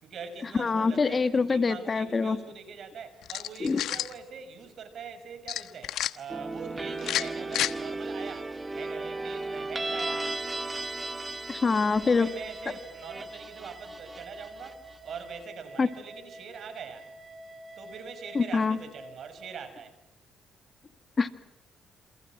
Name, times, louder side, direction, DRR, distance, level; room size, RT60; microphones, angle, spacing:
voice 1, 0.0-10.3 12.0-17.1 17.8-20.0, right 6 dB, 60° right, 10 dB, 6.0 m, -43 dB
voice 2, 0.6-2.4 3.6-3.8 11.5-12.3 15.8-15.9 18.4-18.8 21.2-21.3, left 4 dB, 35° left, 10 dB, 1.9 m, -25 dB
sound 1, 3.2-4.1 5.5-6.1 7.0-7.7, left 12 dB, 80° left, 1.2 m, -30 dB
sound 2, 6.3-15.2, right 2 dB, 20° right, 1.7 m, -36 dB
sound 3, 11.9-19.6, right 1 dB, 35° right, 3.5 m, -47 dB
28.5 x 27.5 x 6.2 m, 0.87 s
cardioid pair, 90°, 0 cm